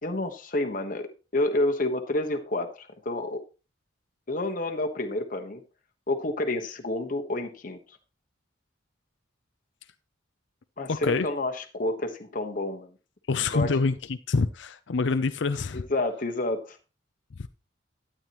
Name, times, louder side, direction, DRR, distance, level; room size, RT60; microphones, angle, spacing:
voice 1, 0.0-1.1 1.3-3.4 4.3-5.6 6.1-7.8 10.8-12.9 13.5-13.7 15.7-16.8, left 2 dB, 45° left, 4 dB, 1.3 m, -29 dB
voice 2, 10.9-11.3 13.3-15.8 17.4-17.5, left 4 dB, 65° left, 12 dB, 0.5 m, -26 dB
12.5 x 9.2 x 3.0 m, 0.31 s
head